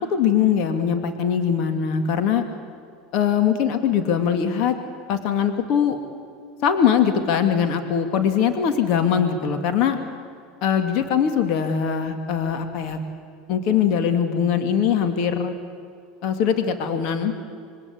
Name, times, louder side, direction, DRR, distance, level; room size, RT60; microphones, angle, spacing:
voice 1, 0.1-2.4 3.1-4.8 5.1-6.0 6.6-10.0 10.6-13.0 13.5-15.5 16.2-17.3, left 8 dB, 60° left, 7 dB, 2.5 m, -21 dB
26.0 x 22.5 x 8.7 m, 2.3 s
hypercardioid pair, 95°, 0 cm